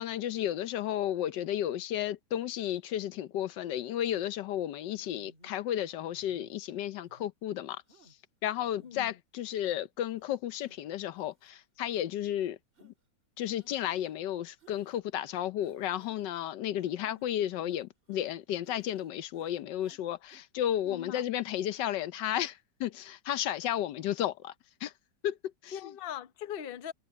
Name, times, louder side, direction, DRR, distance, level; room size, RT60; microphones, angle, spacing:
voice 1, 0.0-7.8 8.4-12.9 13.4-24.5 24.8-24.9 25.2-25.4 25.6-25.9, left 11 dB, 80° left, 1.3 m, -33 dB
sound 1, 4.1-4.3 5.0-5.5 6.0-6.5 7.1-7.3 7.9-8.1 8.6-9.1 9.6-9.7 10.1-10.3 10.6-10.8 11.2-11.5 11.9-12.0 12.8-12.9 13.6-14.1 14.6-15.0 15.6-16.3 16.8-18.3 18.6-19.1 19.3-20.0 20.3-20.4, right 1 dB, 30° right, 2.4 m, -60 dB
voice 2, 8.8-9.1 20.9-21.2 25.7-26.9, left 9 dB, 40° left, 0.8 m, -40 dB
omnidirectional pair, 1.9 m